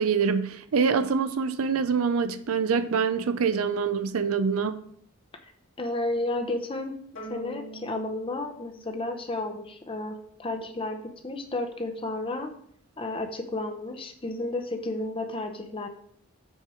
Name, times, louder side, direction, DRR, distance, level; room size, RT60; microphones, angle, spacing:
voice 1, 0.0-4.8, right 5 dB, 75° right, 0.5 m, -25 dB
voice 2, 5.8-6.9 7.3-11.0 11.2-12.5 13.0-15.9, left 2 dB, 25° left, 0.7 m, -32 dB
sound 1, 7.2-9.7, left 1 dB, 65° left, 1.8 m, -43 dB
6.3 x 4.5 x 4.9 m
head